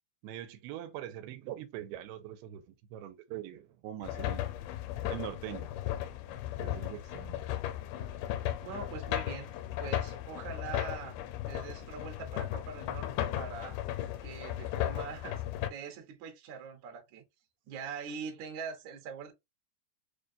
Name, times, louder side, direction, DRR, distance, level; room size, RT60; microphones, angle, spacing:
voice 1, 0.2-4.4 5.1-5.7 6.6-7.4, right 12 dB, 85° right, 2.5 m, -42 dB
sound 1, 4.0-15.7, left 12 dB, 80° left, 2.3 m, -36 dB
voice 2, 8.6-9.5 9.8-11.2 11.5-13.8 14.2-15.4 15.7-17.2 17.7-19.3, right 6 dB, 65° right, 2.1 m, -43 dB
6.6 x 2.2 x 2.6 m
omnidirectional pair, 4.4 m